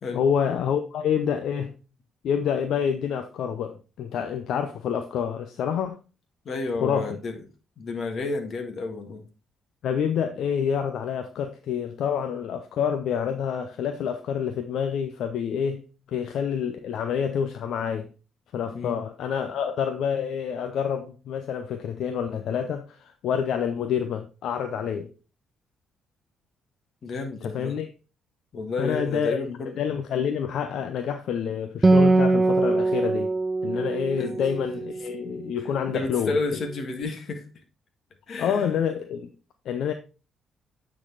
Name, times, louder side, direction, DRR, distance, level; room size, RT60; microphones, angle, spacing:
voice 1, 0.1-1.7 2.2-6.0 6.8-7.2 9.8-15.8 16.1-18.1 18.5-25.1 27.4-27.9 28.8-29.4 29.8-33.3 33.6-36.4 38.4-39.3 39.7-39.9, left 8 dB, 75° left, 7 dB, 0.6 m, -27 dB
voice 2, 6.4-7.4 7.8-9.2 18.7-19.0 27.0-27.8 28.5-29.8 34.1-34.4 35.9-37.4 38.3-38.7, left 3 dB, 55° left, 5 dB, 1.7 m, -31 dB
Acoustic guitar, 31.8-35.6, right 2 dB, 25° right, 0.4 m, -22 dB
9.0 x 4.0 x 3.9 m, 0.33 s
cardioid pair, 90°, 0 cm